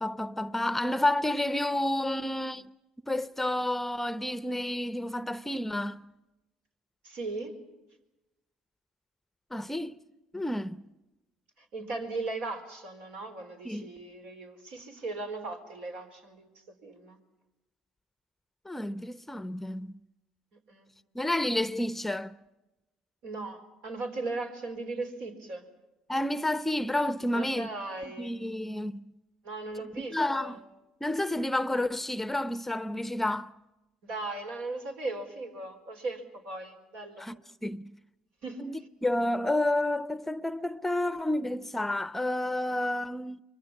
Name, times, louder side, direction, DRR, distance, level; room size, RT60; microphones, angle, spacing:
voice 1, 0.0-2.7 3.1-6.0 9.5-9.9 10.3-10.8 13.6-13.9 18.7-19.9 21.1-22.3 26.1-27.7 28.2-29.1 30.0-30.6 31.0-33.5 37.2-37.4 37.6-37.9 38.6-38.7 39.0-43.4, left 1 dB, 10° left, 0.8 m, -30 dB
voice 2, 7.0-7.6 11.6-16.5 16.8-17.2 20.7-20.9 23.2-25.7 27.3-28.3 29.4-30.6 34.0-37.3 38.4-38.7, right 3 dB, 70° right, 4.4 m, -38 dB
25.0 x 23.5 x 7.3 m
hypercardioid pair, 65°, 2 cm